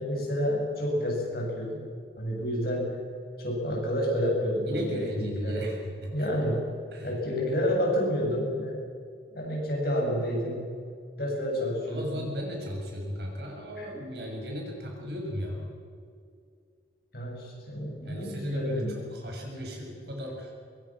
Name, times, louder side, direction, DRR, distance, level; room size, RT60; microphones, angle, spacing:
voice 1, 0.0-1.9 2.2-3.0 3.4-5.7 6.1-6.7 7.0-8.8 9.3-10.8 11.2-12.3 13.8-13.9 17.1-19.0, equal, 55° left, -2 dB, 7.6 m, -29 dB
voice 2, 4.7-6.3 6.9-7.1 11.9-15.7 18.0-20.5, equal, 65° right, 0 dB, 6.5 m, -35 dB
23.0 x 22.0 x 6.3 m, 2.3 s
head